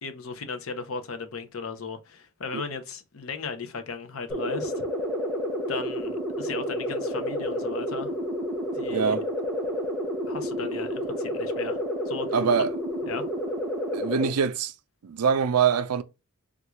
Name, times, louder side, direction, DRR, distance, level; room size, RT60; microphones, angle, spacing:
voice 1, 0.0-4.8 5.7-8.1 8.7-9.2 10.3-11.8 12.1-12.7 13.0-13.2, left 4 dB, 70° left, 0.7 m, -36 dB
sound 1, 4.3-14.3, equal, ahead, 0.8 m, -30 dB
voice 2, 8.9-9.2 12.3-12.7 13.9-14.7 15.0-16.0, right 6 dB, 90° right, 0.5 m, -24 dB
3.6 x 2.4 x 3.0 m
head